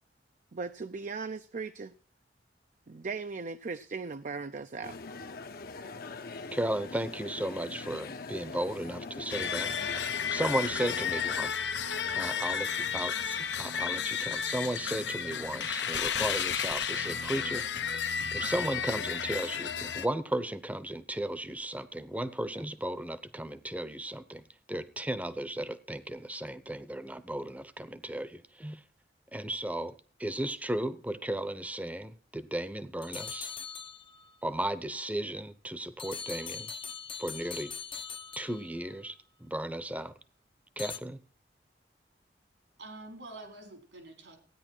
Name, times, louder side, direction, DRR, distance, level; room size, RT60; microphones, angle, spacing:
voice 1, 0.5-1.9 2.9-5.0, right 4 dB, 45° right, 10 dB, 0.5 m, -38 dB
sound 1, 4.8-11.5, left 3 dB, 60° left, 0.9 m, -42 dB
voice 2, 6.5-11.5 12.2-12.7 12.9-28.8 29.3-33.5 34.4-36.7 37.2-37.7 38.4-40.1 40.8-41.2, right 1 dB, 10° right, 14 dB, 0.8 m, -35 dB
sound 2, 9.3-20.1, left 7 dB, 85° left, 0.9 m, -32 dB
voice 3, 10.2-10.9 11.8-12.8 13.7-13.8 42.8-44.4, right 2 dB, 85° right, 4 dB, 4.3 m, -48 dB
sound 3, 33.0-34.4 36.0-39.0 40.8-41.0, left 6 dB, 30° left, 0.6 m, -41 dB
16.0 x 9.7 x 4.5 m, 0.42 s
head